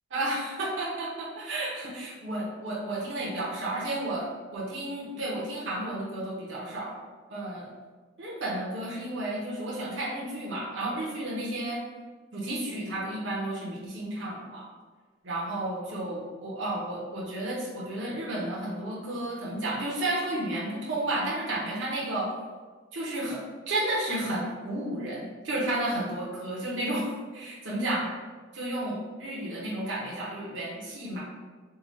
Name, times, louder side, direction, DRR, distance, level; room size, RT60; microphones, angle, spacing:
voice 1, 0.1-7.0 7.3-7.7 8.2-11.8 12.3-14.7 15.2-22.3 22.9-28.1 28.5-31.2, right 1 dB, 65° right, -6 dB, 0.9 m, -32 dB
3.8 x 2.3 x 4.1 m, 1.4 s
head